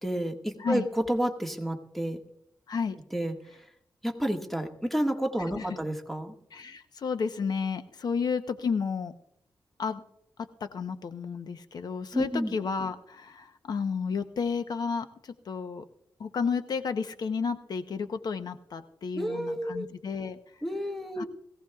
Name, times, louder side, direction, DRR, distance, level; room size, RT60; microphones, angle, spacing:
voice 1, 0.0-2.2 3.1-3.3 4.0-6.3 12.1-12.6 19.2-19.9 20.6-21.2, right 1 dB, ahead, 3 dB, 1.7 m, -30 dB
voice 2, 2.7-3.0 5.4-5.8 6.5-9.1 9.8-10.0 10.4-15.9 16.2-20.4 21.2-21.3, left 5 dB, 65° left, 9 dB, 0.8 m, -32 dB
21.0 x 16.5 x 2.3 m, 0.75 s
cardioid pair, 90°, 7 cm